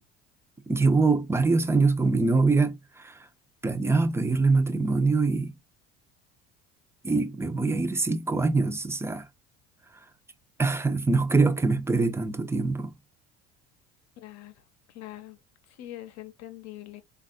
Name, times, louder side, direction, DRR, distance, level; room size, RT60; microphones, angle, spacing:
voice 1, 0.7-3.2 3.6-5.5 7.0-9.3 10.6-12.9, right 3 dB, 10° right, 0.5 m, -24 dB
voice 2, 14.2-14.6 14.9-15.4 15.7-17.0, left 14 dB, 60° left, 0.8 m, -43 dB
3.4 x 2.3 x 2.3 m
supercardioid pair, 85°, 30 cm